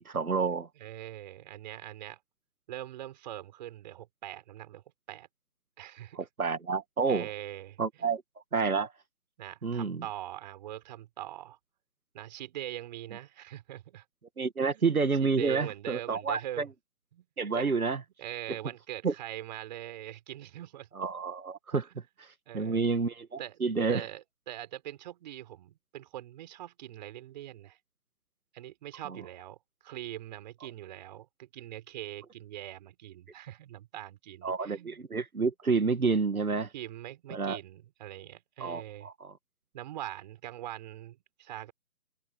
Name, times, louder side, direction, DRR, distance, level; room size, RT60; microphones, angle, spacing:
voice 1, 0.1-0.7 6.1-7.3 7.8-8.2 8.5-8.9 9.6-10.0 14.4-16.7 17.4-18.0 19.0-19.1 21.0-21.9 22.2-24.0 29.1-29.2 34.4-36.7 37.3-37.6 38.6-39.3, right 4 dB, 85° right, 2.1 m, -29 dB
voice 2, 0.8-2.2 2.7-5.3 5.8-6.2 7.0-8.1 9.4-11.6 12.1-14.0 14.6-14.8 15.2-16.7 17.1-17.3 17.5-17.7 18.2-20.9 22.5-22.8 23.4-23.6 23.9-27.8 28.5-29.6 29.8-35.0 36.7-39.1 39.7-41.7, right 13 dB, 30° right, 5.0 m, -42 dB
open air
figure-of-eight pair, 150°, 42 cm